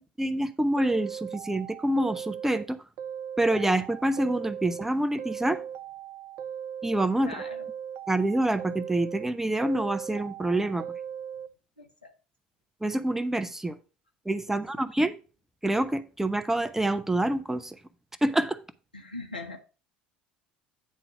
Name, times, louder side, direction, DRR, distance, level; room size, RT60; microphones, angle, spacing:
voice 1, 0.0-2.8 3.4-5.6 6.8-7.4 8.1-10.8 12.8-13.8 14.3-15.1 15.6-17.8 18.2-18.6, right 1 dB, 10° right, 0.7 m, -27 dB
sound 1, 0.8-2.6 3.0-4.9 5.2-7.1 7.4-9.3 9.6-11.5, right 8 dB, 55° right, 0.4 m, -38 dB
voice 2, 7.2-7.7 11.8-12.1 14.5-14.9 18.9-19.6, left 2 dB, 90° left, 1.0 m, -41 dB
9.3 x 3.8 x 5.5 m
figure-of-eight pair, 65°, 5 cm